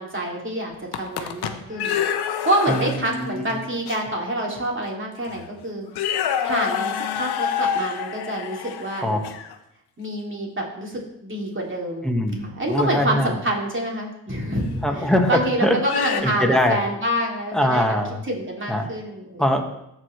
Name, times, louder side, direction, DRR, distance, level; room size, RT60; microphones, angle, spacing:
voice 1, 0.0-2.0 2.4-5.9 6.4-9.2 10.0-12.1 12.5-17.8 18.3-19.4, right 1 dB, 30° right, -1 dB, 2.6 m, -27 dB
sound 1, 0.7-3.2 3.9-4.0 4.8-4.9 5.3-5.5 5.9-9.5 12.7-12.9 14.6-14.7 15.8-16.2, left 8 dB, 85° left, 0.7 m, -27 dB
voice 2, 2.7-3.5 9.0-9.2 12.0-13.3 14.8-15.8 16.2-16.8 17.5-18.2 18.7-18.9 19.4-19.6, equal, ahead, 2 dB, 1.5 m, -22 dB
13.5 x 4.7 x 3.2 m, 0.82 s
cardioid pair, 60°, 38 cm